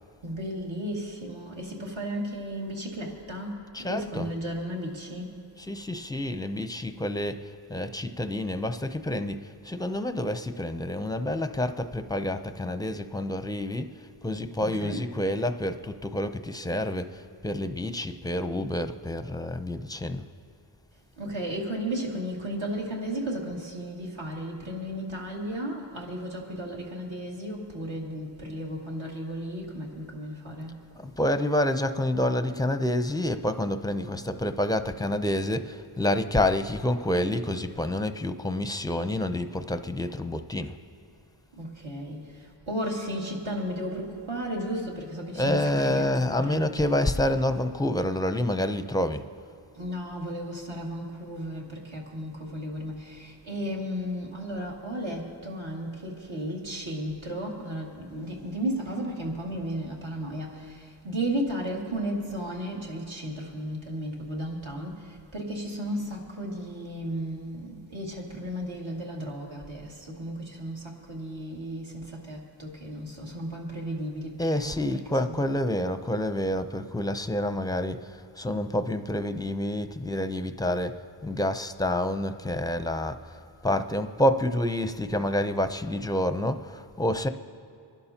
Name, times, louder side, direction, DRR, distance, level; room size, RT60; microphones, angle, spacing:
voice 1, 0.2-5.3 14.6-15.1 21.2-30.8 41.6-47.2 49.7-75.5 85.1-85.2, equal, 65° right, -2 dB, 2.3 m, -34 dB
voice 2, 3.7-4.3 5.6-13.9 14.2-17.1 17.4-20.2 31.0-40.7 45.3-49.3 74.4-78.0 78.4-81.0 81.2-83.2 83.6-87.3, left 1 dB, 10° left, 9 dB, 0.6 m, -28 dB
28.0 x 11.5 x 2.9 m, 2.5 s
wide cardioid pair, 55°, 50 cm